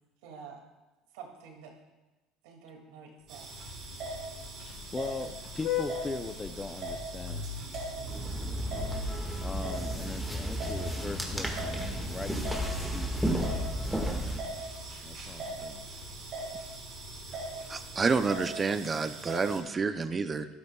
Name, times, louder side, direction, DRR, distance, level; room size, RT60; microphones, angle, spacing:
voice 1, 0.2-0.6 1.1-1.7 2.4-3.5, right 6 dB, 85° right, 1 dB, 2.3 m, -48 dB
Vehicle horn car horn honking, 3.3-18.7, left 6 dB, 65° left, 2.4 m, -41 dB
sound 1, 3.3-19.6, right 3 dB, 55° right, 3.9 m, -41 dB
voice 2, 4.6-7.5 9.4-14.2 15.0-15.9 17.6-17.7, left 3 dB, 20° left, 10 dB, 0.6 m, -41 dB
sound 2, 8.1-14.4, right 1 dB, ahead, 1.7 m, -33 dB
voice 3, 17.7-20.5, right 4 dB, 25° right, 11 dB, 0.6 m, -29 dB
13.0 x 12.5 x 2.3 m, 1.1 s
supercardioid pair, 115°, 0 cm